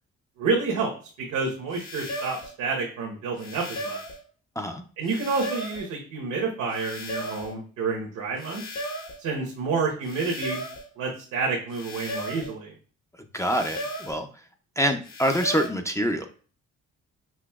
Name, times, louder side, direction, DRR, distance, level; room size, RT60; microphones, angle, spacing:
voice 1, 0.4-0.9 1.2-4.0 5.0-8.6 9.2-10.6 11.0-12.7, right 4 dB, 75° right, -1 dB, 1.1 m, -29 dB
sound 1, 1.7-2.5 3.4-4.2 5.0-5.9 6.7-7.5 8.4-9.2 10.0-10.9 11.7-12.5 13.4-14.2 15.0-15.7, equal, 60° left, 1.2 m, -36 dB
voice 2, 13.3-14.3 14.8-16.3, equal, 10° left, 4 dB, 0.4 m, -25 dB
6.0 x 2.7 x 2.3 m, 0.40 s
cardioid pair, 90°, 30 cm